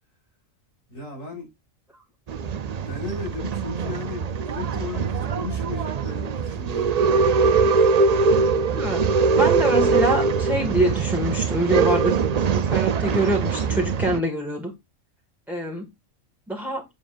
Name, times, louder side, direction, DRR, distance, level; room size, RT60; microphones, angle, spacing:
voice 1, 0.9-1.5 2.8-7.0, left 4 dB, 75° left, 6.8 m, -35 dB
Male speech man speaking / Chatter / Rattle, 2.3-14.2, right 5 dB, 60° right, 0.4 m, -22 dB
voice 2, 8.7-9.1 9.4-12.2 12.5-14.7 15.5-15.9 16.5-16.8, right 1 dB, ahead, 1.9 m, -25 dB
9.5 x 7.1 x 2.6 m
omnidirectional pair, 1.4 m